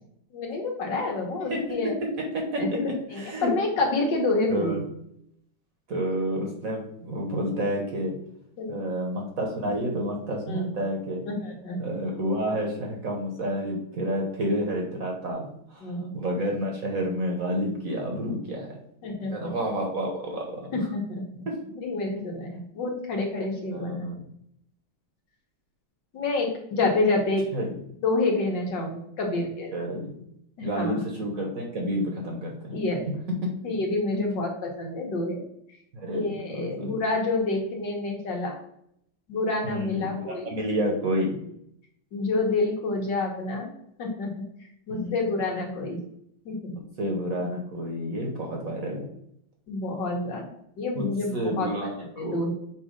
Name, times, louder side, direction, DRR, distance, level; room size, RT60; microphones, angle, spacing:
voice 1, 0.3-1.9 2.6-2.8 3.1-4.8 8.6-8.8 10.5-10.6 11.3-11.8 15.8-16.2 19.0-19.5 20.7-21.2 21.8-24.1 26.1-27.5 28.0-29.7 30.6-31.0 32.7-33.0 33.6-35.4 36.1-38.6 39.3-40.5 42.1-43.7 44.0-44.4 44.9-46.0 46.5-46.7 49.7-50.5 50.8-51.9 52.2-52.5, left 2 dB, 65° left, 0 dB, 1.8 m, -28 dB
voice 2, 2.3-2.8 3.1-3.5 4.5-4.8 5.9-8.2 8.7-11.2 11.8-18.8 19.3-20.8 21.5-21.6 22.5-22.6 23.7-24.2 27.5-27.8 29.3-30.2 30.6-32.8 33.1-33.2 33.4-33.5 34.1-34.2 35.9-37.0 39.6-41.4 44.9-45.2 47.0-49.1 50.9-51.1 51.3-52.5, equal, 50° right, 1 dB, 1.3 m, -30 dB
7.2 x 2.6 x 5.0 m, 0.72 s
omnidirectional pair, 2.2 m